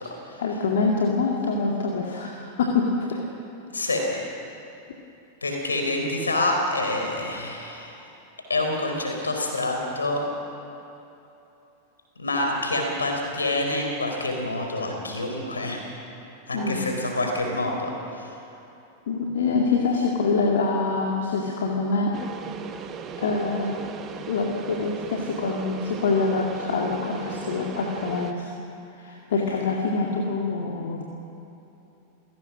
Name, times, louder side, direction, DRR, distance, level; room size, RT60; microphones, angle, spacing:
voice 1, 0.4-3.2 16.5-16.9 19.1-22.1 23.2-23.7 24.3-28.5 28.9-31.1, left 4 dB, 60° left, -1 dB, 2.1 m, -25 dB
voice 2, 3.7-4.2 5.4-8.0 8.5-10.2 12.2-15.8 16.5-18.3, left 2 dB, 75° left, 2 dB, 4.4 m, -27 dB
sound 1, 22.1-28.3, right 6 dB, 30° right, 1.5 m, -37 dB
28.5 x 17.0 x 6.3 m, 2.9 s
figure-of-eight pair, 90°, 0 cm